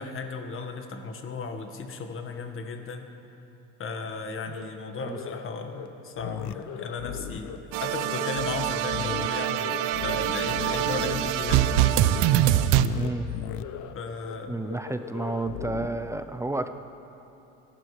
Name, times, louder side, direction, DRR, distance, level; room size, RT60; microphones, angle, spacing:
voice 1, 0.0-3.1 3.8-7.5 7.8-11.7 13.9-14.6, left 4 dB, 40° left, 5 dB, 1.6 m, -35 dB
sound 1, 4.5-4.6 5.0-5.5 5.7-5.9 6.2-7.6 7.9-8.4 8.7-8.8 9.1-12.7 13.0-13.1 13.4-13.9 14.2-14.3 14.6-15.9, left 8 dB, 65° left, 1.0 m, -38 dB
sound 2, 6.2-6.5 8.3-9.3 10.5-10.9 12.7-13.6, left 15 dB, 80° left, 0.5 m, -35 dB
sound 3, 7.7-12.9, right 14 dB, 75° right, 0.6 m, -24 dB
voice 2, 12.9-13.3 14.5-16.7, right 2 dB, 10° right, 8 dB, 0.6 m, -31 dB
26.0 x 12.0 x 3.3 m, 2.9 s
supercardioid pair, 105°, 32 cm